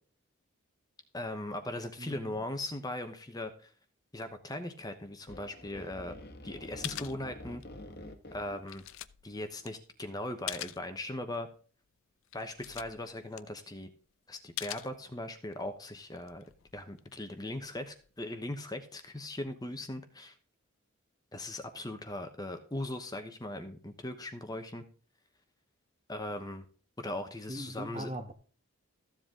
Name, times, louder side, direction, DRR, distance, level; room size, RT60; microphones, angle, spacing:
voice 1, 1.1-3.7 4.1-6.2 6.4-7.6 8.3-8.8 9.2-11.5 12.3-13.9 14.3-16.4 16.7-20.3 21.3-24.8 26.1-26.6 27.0-28.1, left 1 dB, 15° left, 0.9 m, -39 dB
voice 2, 2.0-2.4 27.5-28.3, right 1 dB, 30° right, 1.3 m, -41 dB
sound 1, 5.3-8.9 10.4-10.5, left 1 dB, 45° left, 1.4 m, -48 dB
sound 2, 6.5-6.6 6.8-7.9 8.2-10.9 11.3-11.5 11.9-12.0 12.2-14.0 14.6-15.5 16.0-18.2, left 14 dB, 65° left, 0.5 m, -44 dB
14.5 x 7.8 x 3.7 m
head